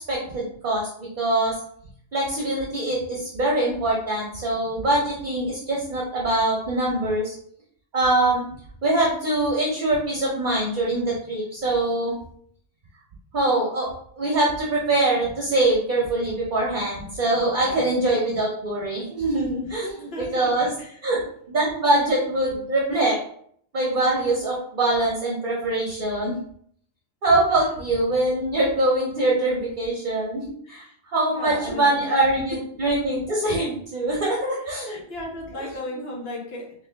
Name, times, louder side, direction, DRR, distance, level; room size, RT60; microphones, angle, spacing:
voice 1, 0.1-1.5 2.1-7.3 7.9-8.4 8.8-12.2 13.3-13.9 14.2-20.7 21.0-23.2 23.7-26.4 27.2-30.8 31.1-35.0 35.5-35.7, right 2 dB, 50° right, -4 dB, 0.9 m, -23 dB
voice 2, 17.6-17.9 19.7-21.0 30.6-30.9 31.2-32.1 34.9-36.7, left 1 dB, 60° left, 0 dB, 1.1 m, -36 dB
3.1 x 2.9 x 3.3 m, 0.64 s
omnidirectional pair, 1.2 m